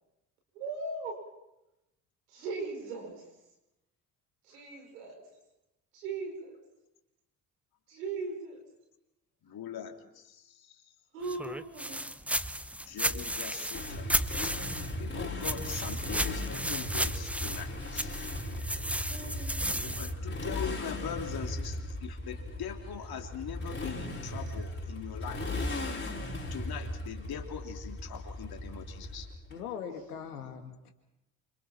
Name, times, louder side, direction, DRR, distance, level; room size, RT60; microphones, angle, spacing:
voice 1, 0.5-1.2 2.3-3.3 4.4-5.3 5.9-6.6 7.9-8.6 11.1-12.1 19.0-20.0, right 3 dB, 85° right, 1 dB, 5.8 m, -39 dB
voice 2, 9.4-10.8 12.8-14.6 15.0-18.3 19.8-26.1 26.5-29.3, left 8 dB, 55° left, 3 dB, 3.4 m, -42 dB
sound 1, 11.3-15.1 15.4-20.1, right 1 dB, 5° right, 1.0 m, -34 dB
Motorcycle, 13.7-29.5, left 1 dB, 25° left, 5.4 m, -37 dB
voice 3, 29.5-30.9, left 7 dB, 90° left, 5 dB, 2.2 m, -40 dB
28.0 x 26.5 x 4.5 m, 0.91 s
hypercardioid pair, 55°, 44 cm